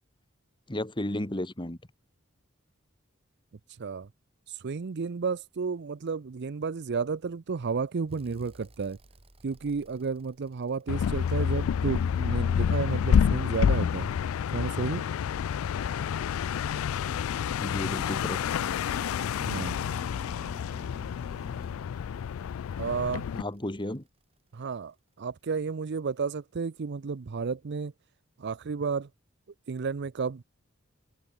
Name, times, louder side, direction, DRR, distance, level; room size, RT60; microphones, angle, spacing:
voice 1, 0.7-1.8 17.6-18.4 23.3-24.0, left 1 dB, 25° left, 2.3 m, -33 dB
voice 2, 4.6-9.0 9.4-14.1 14.5-15.0 19.4-19.9 22.8-23.2 24.5-27.9 28.4-29.1 29.7-30.4, right 5 dB, 55° right, 0.5 m, -32 dB
sound 1, 8.1-12.3 13.5-24.7 26.3-26.4, right 1 dB, 30° right, 3.2 m, -54 dB
sound 2, 10.9-23.4, left 7 dB, 85° left, 0.3 m, -28 dB
head